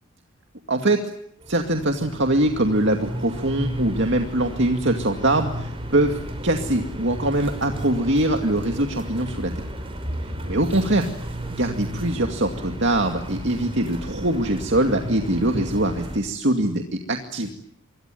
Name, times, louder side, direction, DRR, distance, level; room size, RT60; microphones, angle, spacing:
voice 1, 0.7-1.0 1.5-9.5 10.5-11.1 11.6-17.5, right 1 dB, 55° right, 4 dB, 2.4 m, -23 dB
sound 1, 1.4-16.2, right 1 dB, 25° right, 5.8 m, -33 dB
26.5 x 23.0 x 9.3 m, 0.69 s
head